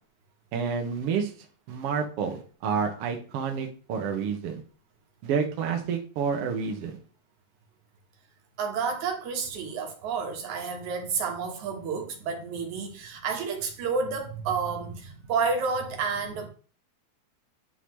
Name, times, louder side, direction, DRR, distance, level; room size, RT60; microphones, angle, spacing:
voice 1, 0.5-1.3 1.7-4.6 5.2-7.0, right 6 dB, 60° right, 1.8 m, -29 dB
voice 2, 8.6-16.5, right 5 dB, 80° right, 2.7 m, -30 dB
10.0 x 3.9 x 3.1 m
omnidirectional pair, 3.4 m